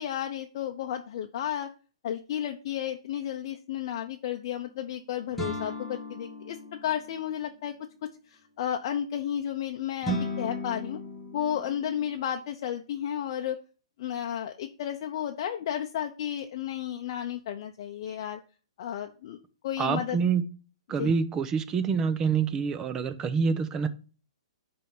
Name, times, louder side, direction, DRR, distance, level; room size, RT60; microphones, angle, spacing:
voice 1, 0.0-1.7 2.0-7.7 8.0-11.0 11.3-13.6 14.0-18.4 18.8-20.2 21.0-21.1, left 10 dB, 50° left, 0.7 m, -33 dB
sound 1, 5.4-7.4 10.0-12.2, equal, 5° left, 1.3 m, -36 dB
voice 2, 19.8-20.4 20.9-23.9, right 5 dB, 20° right, 0.6 m, -26 dB
10.0 x 3.5 x 5.4 m
hypercardioid pair, 155°, 3 cm